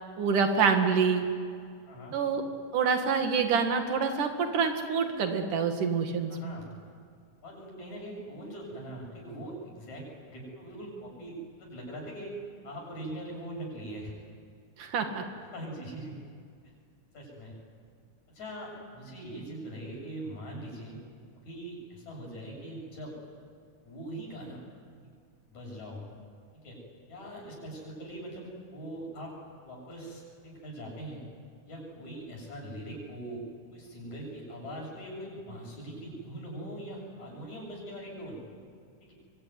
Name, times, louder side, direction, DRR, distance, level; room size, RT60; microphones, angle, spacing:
voice 1, 0.2-1.3 2.1-2.4 2.7-6.3 14.8-15.2, right 5 dB, 75° right, 5 dB, 3.6 m, -26 dB
voice 2, 1.9-2.2 6.3-6.7 7.4-12.3 12.6-14.1 15.5-16.1 17.1-17.5 18.3-21.0 21.3-23.1 23.8-24.6 25.5-26.1 26.5-26.8 27.1-29.3 29.6-31.2 31.7-33.4 33.7-38.4 39.0-39.1, right 1 dB, 65° left, -2 dB, 9.0 m, -41 dB
25.5 x 24.0 x 9.7 m, 2.2 s
omnidirectional pair, 3.6 m